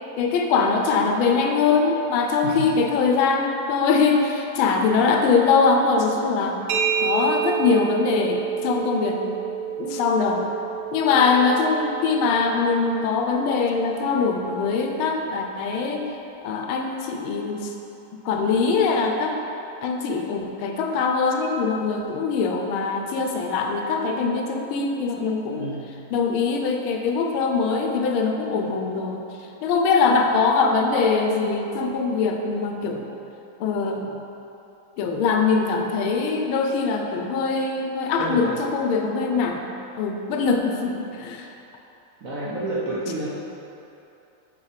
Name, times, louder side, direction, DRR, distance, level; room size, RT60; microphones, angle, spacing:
voice 1, 0.2-6.6 7.0-9.4 9.8-10.5 10.9-16.0 16.4-17.7 18.2-19.3 19.8-25.6 26.1-29.2 29.6-33.1 33.6-34.1 35.0-39.7 40.0-41.5, left 4 dB, 90° left, 3 dB, 1.5 m, -22 dB
sound 1, 6.7-14.2, right 8 dB, 80° right, 1.5 m, -30 dB
voice 2, 25.5-25.9 38.2-38.5 42.2-43.3, right 2 dB, 55° right, -7 dB, 1.0 m, -29 dB
5.5 x 4.4 x 4.9 m, 2.9 s
omnidirectional pair, 2.2 m